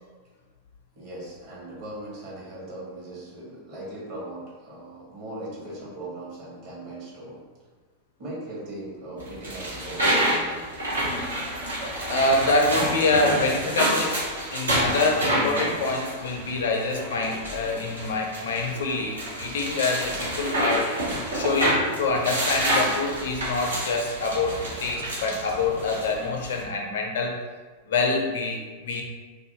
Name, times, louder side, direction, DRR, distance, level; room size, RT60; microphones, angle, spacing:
voice 1, 0.9-7.4 8.2-10.7, right 1 dB, 45° right, -6 dB, 1.1 m, -39 dB
sound 1, 9.2-26.6, right 1 dB, 75° right, 0.8 m, -28 dB
voice 2, 12.1-14.2 14.5-20.9 21.3-27.4 27.9-29.0, left 3 dB, 60° left, 2 dB, 0.4 m, -26 dB
2.5 x 2.4 x 2.8 m, 1.4 s
figure-of-eight pair, 90°, 0 cm